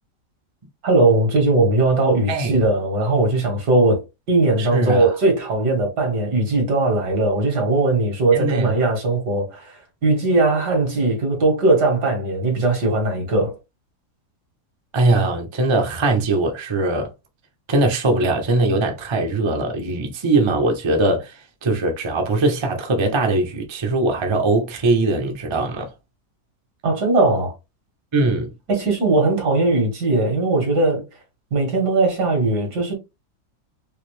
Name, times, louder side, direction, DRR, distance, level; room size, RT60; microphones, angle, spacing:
voice 1, 0.8-4.0 4.3-13.6 26.8-27.5 28.7-31.1 31.5-32.9, right 2 dB, 80° right, 2.1 m, -19 dB
voice 2, 4.6-5.1 8.3-8.7 14.9-17.1 17.7-21.3 21.6-25.9 28.1-28.5, right 2 dB, 40° right, 0.4 m, -21 dB
4.8 x 2.0 x 3.1 m
omnidirectional pair, 1.8 m